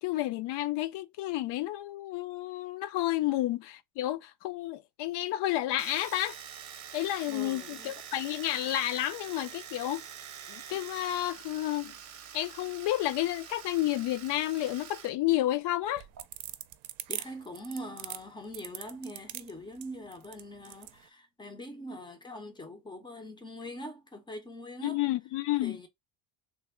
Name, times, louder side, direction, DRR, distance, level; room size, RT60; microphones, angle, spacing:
voice 1, 0.0-6.4 6.9-10.1 10.5-11.9 12.3-16.0 24.8-25.8, left 14 dB, 65° left, 0.5 m, -31 dB
Domestic sounds home sounds, 5.8-15.1 15.4-16.2, right 8 dB, 35° right, 0.7 m, -46 dB
voice 2, 7.3-7.9 17.1-25.0 25.6-25.9, equal, 10° left, 0.4 m, -43 dB
sound 1, 15.8-21.0, right 15 dB, 75° right, 0.6 m, -41 dB
3.3 x 2.1 x 4.2 m
cardioid pair, 170°, 45 cm